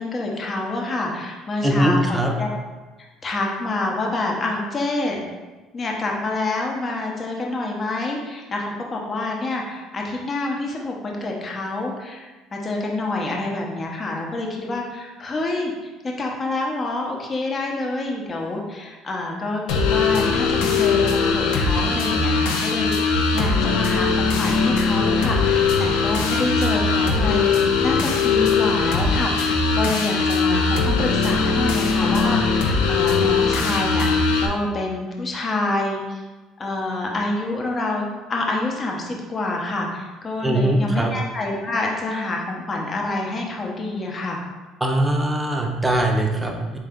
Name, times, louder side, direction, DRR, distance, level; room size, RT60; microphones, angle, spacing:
voice 1, 0.0-2.5 3.0-5.2 5.7-27.4 27.8-36.2 36.6-44.4, left 2 dB, 30° left, 0 dB, 0.9 m, -27 dB
voice 2, 1.6-2.3 40.4-41.1 44.8-46.8, right 1 dB, 10° right, 1 dB, 0.7 m, -21 dB
sound 1, 19.7-34.5, left 4 dB, 90° left, 0.6 m, -20 dB
4.4 x 3.2 x 3.7 m, 1.2 s
supercardioid pair, 100°, 0 cm